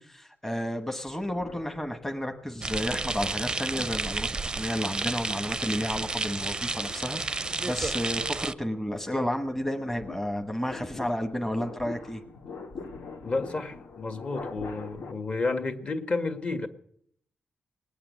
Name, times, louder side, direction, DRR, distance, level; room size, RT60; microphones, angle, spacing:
voice 1, 0.0-4.3 4.5-12.2, equal, 5° left, 4 dB, 1.1 m, -32 dB
sound 1, 1.1-2.5 3.0-15.1, left 4 dB, 85° left, 2.4 m, -45 dB
sound 2, 2.6-8.5, right 3 dB, 20° right, 0.6 m, -31 dB
voice 2, 13.2-16.7, left 3 dB, 35° left, 7 dB, 1.7 m, -31 dB
19.5 x 8.6 x 8.3 m, 0.66 s
wide cardioid pair, 130°, 4 cm